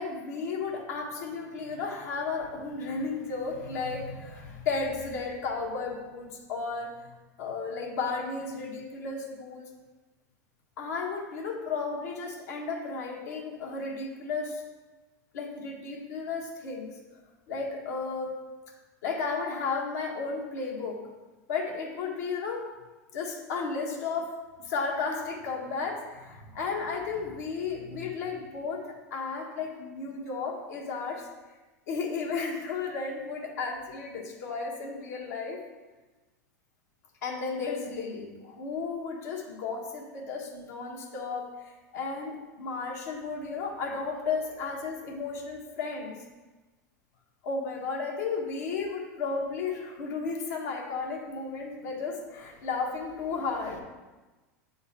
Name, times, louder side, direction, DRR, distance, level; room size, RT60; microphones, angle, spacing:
voice 1, 0.0-9.7 10.8-14.6 15.3-17.0 17.5-18.3 19.0-21.0 21.5-22.7 23.1-24.3 24.6-31.3 31.9-35.6 37.2-46.2 47.4-53.8, left 4 dB, 75° left, 0 dB, 1.4 m, -34 dB
8.0 x 3.8 x 4.3 m, 1.2 s
hypercardioid pair, 100°, 9 cm